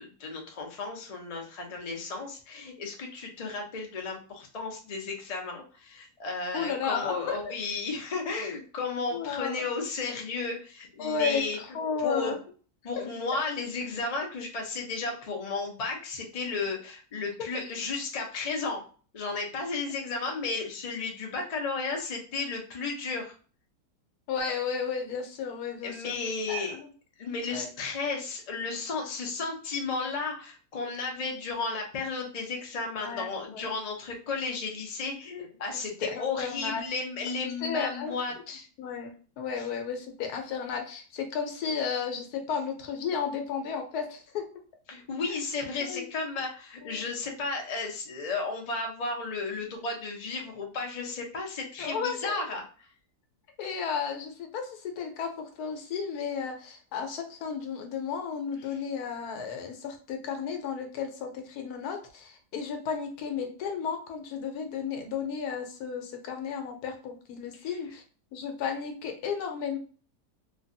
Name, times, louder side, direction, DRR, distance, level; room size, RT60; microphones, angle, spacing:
voice 1, 0.0-11.6 12.0-12.3 12.8-18.8 19.1-23.3 25.8-26.8 27.2-38.7 39.6-39.7 44.9-52.9 58.6-58.8 67.5-67.7, left 4 dB, 55° left, 1 dB, 0.4 m, -34 dB
voice 2, 6.5-7.5 9.1-9.7 11.0-12.4 24.3-26.1 26.5-26.9 27.5-27.7 33.0-33.7 36.0-36.8 37.6-38.1 38.8-44.5 45.8-46.1 46.8-47.0 51.8-52.3 53.6-68.0 68.3-69.8, left 6 dB, 85° left, 5 dB, 1.2 m, -33 dB
3.3 x 2.2 x 2.6 m, 0.40 s
omnidirectional pair, 1.6 m